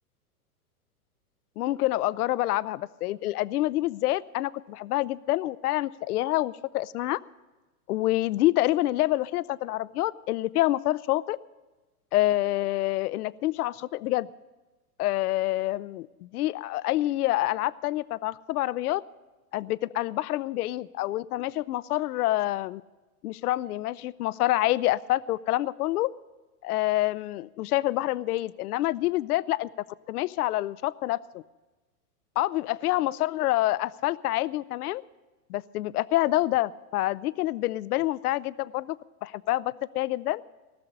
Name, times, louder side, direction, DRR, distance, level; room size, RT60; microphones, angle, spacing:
voice 1, 1.6-7.2 7.9-11.4 12.1-14.3 15.0-19.0 19.5-22.8 23.2-26.1 26.6-29.7 30.1-31.2 32.4-35.0 35.5-40.4, left 16 dB, 75° left, 19 dB, 0.6 m, -27 dB
18.5 x 6.6 x 9.8 m, 1.2 s
hypercardioid pair, 130°, 45 cm